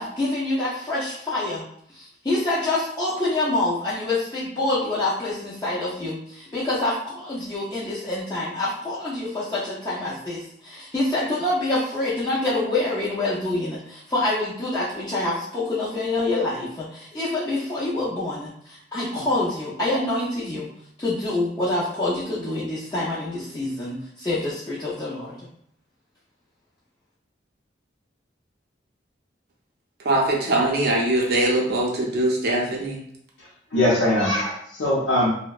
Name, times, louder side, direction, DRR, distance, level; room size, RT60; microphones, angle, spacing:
voice 1, 0.0-1.6 1.9-20.7 21.0-25.4, left 2 dB, 20° left, -9 dB, 0.4 m, -26 dB
voice 2, 30.0-33.0, right 1 dB, 60° right, -2 dB, 0.5 m, -22 dB
voice 3, 33.4-35.3, left 1 dB, 75° left, -7 dB, 0.6 m, -22 dB
2.6 x 2.1 x 2.3 m, 0.68 s
head